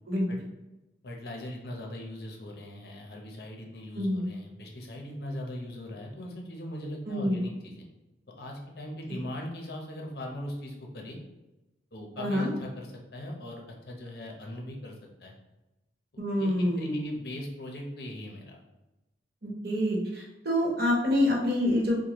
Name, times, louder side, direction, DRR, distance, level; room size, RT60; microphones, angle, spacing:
voice 1, 1.0-7.9 8.4-11.2 11.9-14.9 15.2-15.4 16.1-18.6, left 1 dB, 60° left, 0 dB, 0.7 m, -40 dB
voice 2, 7.1-7.4 12.2-12.5 16.2-17.1 19.4-22.0, left 1 dB, 60° right, -3 dB, 1.0 m, -27 dB
4.8 x 2.2 x 3.0 m, 1.0 s
head